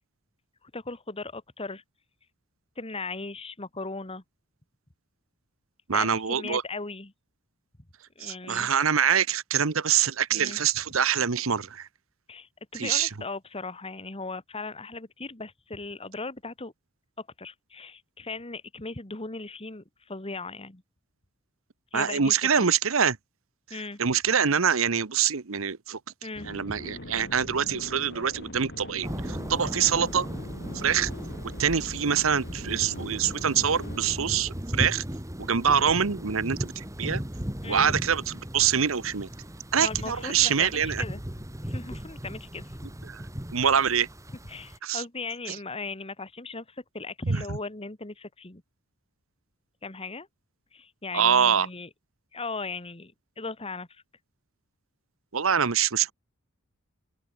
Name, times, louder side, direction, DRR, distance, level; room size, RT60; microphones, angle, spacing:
voice 1, 0.6-1.8 2.8-4.2 5.9-7.1 8.2-8.7 10.3-10.6 12.3-16.7 17.2-20.8 21.9-22.7 23.7-24.0 26.2-26.5 37.6-38.0 39.8-41.2 41.6-42.9 44.4-48.6 49.8-50.3 50.7-51.9 52.3-54.0, left 3 dB, 30° left, 2.1 m, -38 dB
voice 2, 5.9-6.6 8.2-11.9 12.7-13.1 21.9-23.2 24.0-26.0 26.5-30.3 30.7-31.1 31.6-35.0 35.4-37.2 37.7-39.3 39.7-41.0 43.1-43.2 43.5-44.1 44.8-45.0 45.5-45.6 47.3-47.4 51.1-51.7 55.3-56.1, right 7 dB, 75° right, 1.0 m, -25 dB
sound 1, 26.4-34.2, left 1 dB, 55° left, 5.9 m, -42 dB
sound 2, 29.0-44.8, equal, 15° right, 2.2 m, -37 dB
open air
head